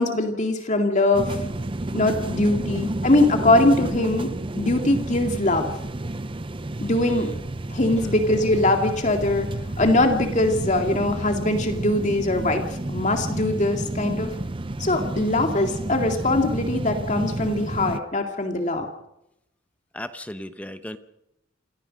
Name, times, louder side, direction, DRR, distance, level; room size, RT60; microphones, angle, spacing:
voice 1, 0.0-1.4 1.9-4.3 4.6-5.7 6.8-7.3 7.7-9.5 9.8-12.6 12.9-14.3 14.8-18.9, left 2 dB, 40° left, 4 dB, 2.2 m, -22 dB
sound 1, 1.1-18.0, right 1 dB, 25° right, 0.7 m, -30 dB
voice 2, 6.9-7.4 7.9-8.1 19.9-21.0, left 1 dB, 5° left, 9 dB, 1.0 m, -36 dB
27.5 x 15.0 x 6.4 m, 0.83 s
head